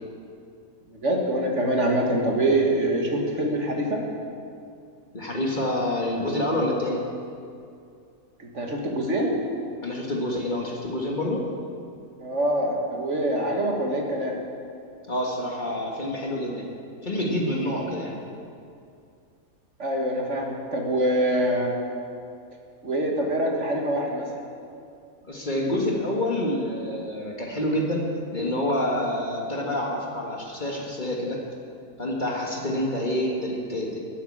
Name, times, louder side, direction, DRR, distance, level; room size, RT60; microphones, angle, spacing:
voice 1, 0.9-4.0 8.4-9.4 12.2-14.4 19.8-21.7 22.8-24.3, right 1 dB, 55° right, 0 dB, 1.9 m, -24 dB
voice 2, 5.1-7.0 9.8-11.5 15.1-16.8 17.0-18.2 25.3-31.4 32.0-34.0, left 1 dB, 35° left, -2 dB, 1.7 m, -27 dB
13.0 x 8.2 x 8.7 m, 2.4 s
omnidirectional pair, 1.5 m